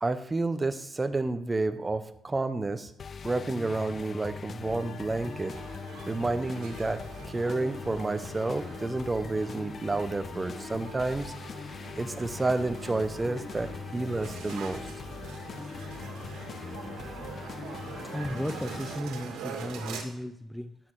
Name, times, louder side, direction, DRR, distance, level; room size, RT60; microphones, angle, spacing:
voice 1, 0.0-2.9 3.2-5.6 6.1-11.3 12.0-14.9, right 2 dB, 20° right, 11 dB, 1.0 m, -30 dB
sound 1, 3.0-19.0, left 5 dB, 45° left, 0.5 m, -41 dB
sound 2, 4.6-12.1, right 2 dB, 85° left, 5.4 m, -55 dB
sound 3, 5.1-20.0, right 6 dB, 90° right, 2.3 m, -44 dB
voice 2, 18.1-20.8, left 1 dB, 5° left, 10 dB, 0.6 m, -35 dB
13.5 x 9.9 x 4.8 m, 0.78 s
cardioid pair, 90°, 0 cm